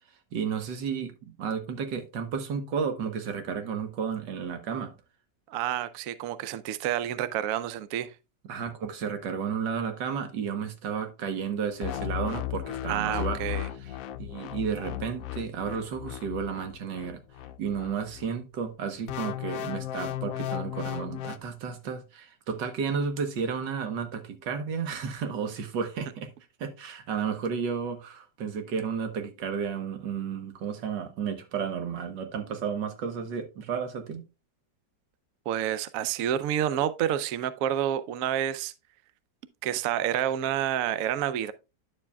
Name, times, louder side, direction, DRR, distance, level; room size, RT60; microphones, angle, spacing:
voice 1, 0.3-5.0 8.4-13.5 13.8-13.9 14.2-17.2 17.6-26.3 26.6-34.2, right 6 dB, 90° right, 1.8 m, -32 dB
voice 2, 5.5-8.1 12.9-13.7 35.5-38.7 39.6-41.5, right 11 dB, 65° right, 0.9 m, -29 dB
sound 1, 11.8-18.3 19.1-21.4, left 13 dB, 70° left, 0.8 m, -35 dB
9.9 x 7.1 x 2.3 m
omnidirectional pair, 1.9 m